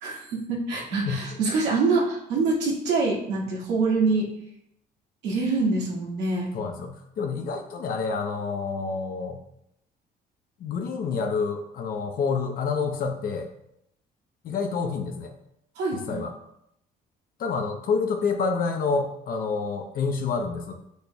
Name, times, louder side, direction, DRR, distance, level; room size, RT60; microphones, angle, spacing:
voice 1, 0.0-4.3 5.2-6.5 15.8-16.2, right 3 dB, 90° right, -4 dB, 2.2 m, -25 dB
voice 2, 6.5-9.4 10.6-13.5 14.4-15.3 16.1-16.3 17.4-20.7, left 5 dB, 60° left, 3 dB, 0.8 m, -28 dB
6.6 x 6.4 x 2.3 m, 0.78 s
cardioid pair, 110°, 17 cm